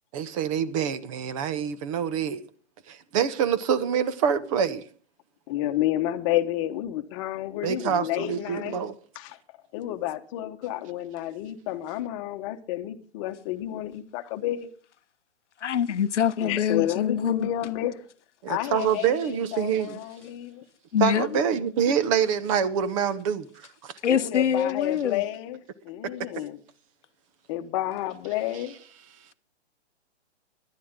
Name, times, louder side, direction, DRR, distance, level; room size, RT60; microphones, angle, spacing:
voice 1, 0.1-2.4 2.9-4.8 7.6-8.9 18.4-20.0 21.0-23.5 23.8-23.9, right 8 dB, 30° right, 0.9 m, -26 dB
voice 2, 5.5-8.8 9.1-9.4 9.7-14.7 16.4-18.0 18.5-20.6 24.1-25.6 25.8-26.6 27.5-28.7, left 13 dB, 30° left, 1.1 m, -30 dB
voice 3, 15.6-17.5 20.9-21.4 24.0-25.2, left 8 dB, 85° left, 0.8 m, -25 dB
19.5 x 11.5 x 3.7 m
hypercardioid pair, 150°, 35 cm